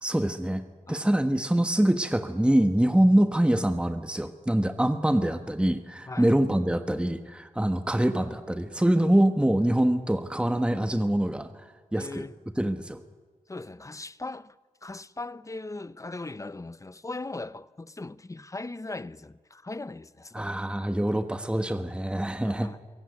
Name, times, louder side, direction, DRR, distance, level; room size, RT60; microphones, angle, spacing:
voice 1, 0.0-12.2 12.6-13.0 20.3-22.7, right 1 dB, 10° right, 1.2 m, -25 dB
voice 2, 12.0-12.3 13.5-14.6 14.8-20.6 22.4-22.8, left 2 dB, 25° left, 0.7 m, -39 dB
23.0 x 16.5 x 9.6 m
cardioid pair, 60°, 14 cm